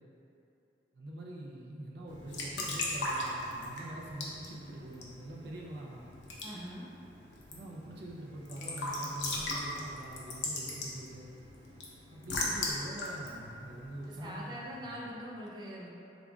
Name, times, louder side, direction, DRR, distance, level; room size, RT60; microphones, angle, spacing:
voice 1, 0.9-6.1 7.5-11.3 12.1-14.9, right 1 dB, 65° right, -3 dB, 0.6 m, -44 dB
Raindrop / Drip / Trickle dribble, 2.1-14.5, left 2 dB, 85° left, 0.7 m, -39 dB
voice 2, 6.4-6.9 14.0-15.9, equal, 25° right, -6 dB, 0.5 m, -43 dB
5.0 x 3.5 x 2.4 m, 2.8 s
head